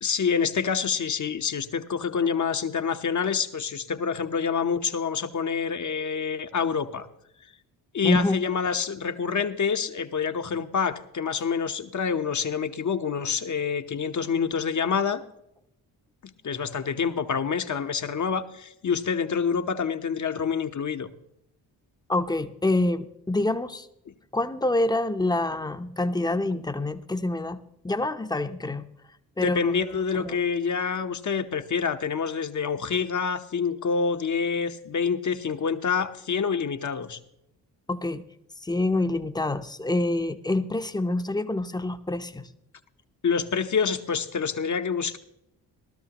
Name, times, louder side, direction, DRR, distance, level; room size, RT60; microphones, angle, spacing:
voice 1, 0.0-7.1 7.9-15.2 16.4-21.1 24.1-24.2 29.4-37.2 43.2-45.2, left 6 dB, 40° left, 9 dB, 1.1 m, -27 dB
voice 2, 8.0-8.4 22.1-23.9 24.3-27.6 27.8-28.8 29.4-29.7 30.1-30.4 37.9-38.2 38.6-42.5, left 2 dB, 10° left, 9 dB, 0.9 m, -26 dB
16.5 x 13.0 x 3.0 m, 0.80 s
hypercardioid pair, 50°, 46 cm